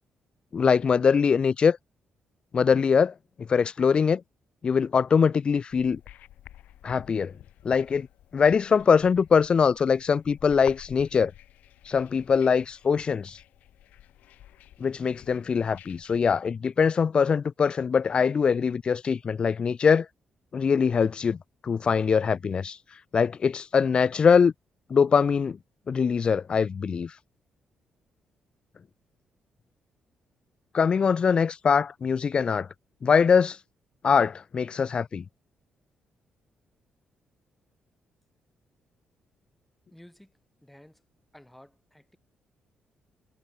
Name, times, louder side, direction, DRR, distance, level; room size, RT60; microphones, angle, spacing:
voice 1, 0.5-1.8 2.5-4.2 4.6-6.0 6.8-7.3 7.6-8.1 8.3-11.3 11.9-13.4 14.8-20.1 20.5-21.4 21.6-22.8 23.1-24.5 24.9-25.6 25.9-27.1 30.7-32.7 33.0-33.6 34.0-35.2, left 6 dB, 40° left, 0.3 m, -22 dB
sound 1, 5.7-16.4, left 12 dB, 85° left, 1.6 m, -51 dB
voice 2, 39.9-41.0 41.3-42.2, left 1 dB, 5° left, 6.3 m, -53 dB
cardioid pair, 100°, 3 cm